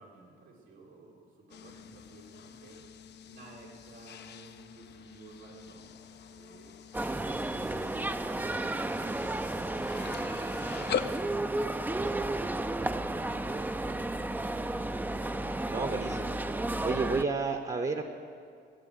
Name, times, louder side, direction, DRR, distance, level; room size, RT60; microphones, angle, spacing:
voice 1, 0.0-6.8, right 3 dB, 85° right, -2 dB, 2.9 m, -55 dB
sound 1, 1.5-11.2, left 7 dB, 60° left, 0.6 m, -42 dB
sound 2, 6.9-17.2, right 2 dB, 10° right, 0.5 m, -33 dB
voice 2, 15.7-16.4 16.8-18.0, right 4 dB, 35° right, 6 dB, 1.0 m, -31 dB
12.0 x 8.4 x 9.8 m, 2.3 s
cardioid pair, 90°, 20 cm